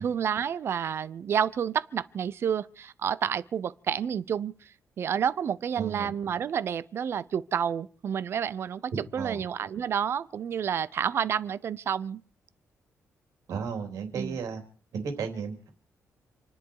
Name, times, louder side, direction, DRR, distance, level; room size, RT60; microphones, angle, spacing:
voice 1, 0.0-4.7 5.0-12.2 14.1-14.4, right 8 dB, 50° right, 0.7 m, -29 dB
voice 2, 5.8-6.1 8.9-9.4 13.5-14.6 14.9-15.7, right 5 dB, 80° right, 3.6 m, -34 dB
28.0 x 10.5 x 4.8 m
wide cardioid pair, 170°, 6 cm